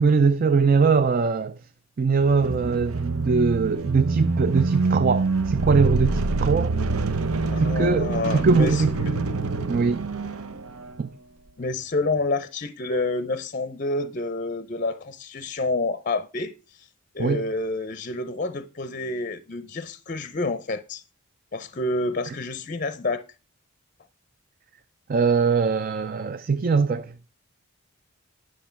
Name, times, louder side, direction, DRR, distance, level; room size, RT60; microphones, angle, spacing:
voice 1, 0.0-1.5 2.0-6.8 7.6-8.9 9.7-10.0 11.0-11.1 17.2-17.4 25.1-27.1, right 5 dB, 40° right, 0.4 m, -21 dB
sound 1, 2.2-11.0, right 3 dB, 75° right, 0.8 m, -26 dB
voice 2, 7.5-9.1 11.6-16.5 16.8-16.9 17.1-21.0 21.5-23.2, left 2 dB, 35° left, 0.5 m, -28 dB
10.5 x 6.3 x 4.4 m
head